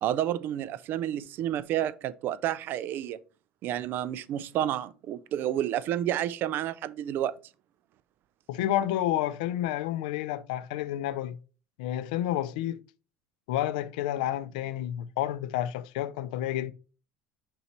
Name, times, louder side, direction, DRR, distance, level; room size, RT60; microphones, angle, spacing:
voice 1, 0.0-3.2 3.6-7.3, right 11 dB, 50° right, 0.4 m, -30 dB
voice 2, 8.5-11.4 11.8-12.8 13.5-16.7, left 12 dB, 85° left, 0.5 m, -30 dB
5.4 x 4.2 x 4.3 m
supercardioid pair, 115°, 4 cm